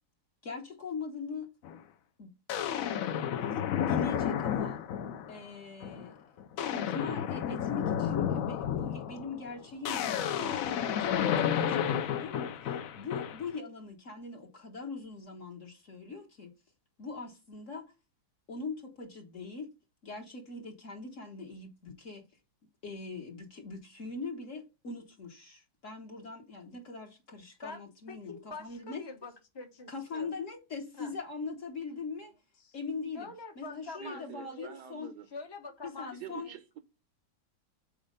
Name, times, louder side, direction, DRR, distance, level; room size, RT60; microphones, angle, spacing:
voice 1, 0.4-1.5 2.2-2.3 3.2-4.8 5.3-6.2 6.6-16.5 17.0-17.9 18.5-19.7 20.0-22.3 22.8-29.0 29.9-32.3 32.7-33.3 33.6-35.1 35.8-36.5, left 4 dB, 50° left, 1.3 m, -41 dB
sound 1, 1.6-1.8 2.5-5.4 5.8-6.1 6.4-13.5, left 9 dB, 65° left, 0.9 m, -31 dB
voice 2, 27.6-30.3 30.9-31.1 32.6-32.8 33.1-34.7 35.3-36.6, left 3 dB, 25° left, 0.6 m, -45 dB
voice 3, 34.0-35.3 36.1-36.8, right 8 dB, 75° right, 1.3 m, -46 dB
6.4 x 4.3 x 5.1 m
omnidirectional pair, 1.8 m